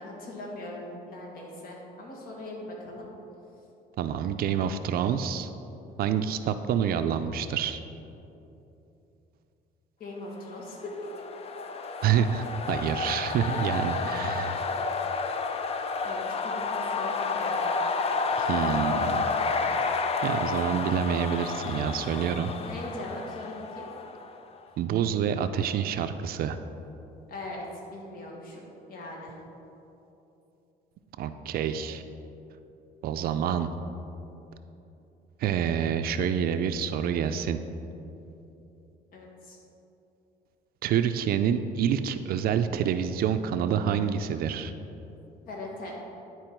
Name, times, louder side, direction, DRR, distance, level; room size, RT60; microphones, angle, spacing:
voice 1, 0.0-3.1 10.0-10.9 13.4-14.0 16.0-17.7 22.6-23.9 27.3-29.4 39.1-39.6 45.5-45.9, left 1 dB, 60° left, -2 dB, 1.6 m, -40 dB
voice 2, 4.0-5.5 6.0-7.8 12.0-14.6 18.4-19.3 20.2-22.5 24.8-26.6 31.2-32.0 33.0-33.7 35.4-37.6 40.8-44.7, right 8 dB, 60° right, 9 dB, 0.4 m, -27 dB
sound 1, 10.6-24.4, left 4 dB, 35° left, 0.5 m, -30 dB
10.5 x 4.5 x 4.5 m, 2.9 s
cardioid pair, 110°, 17 cm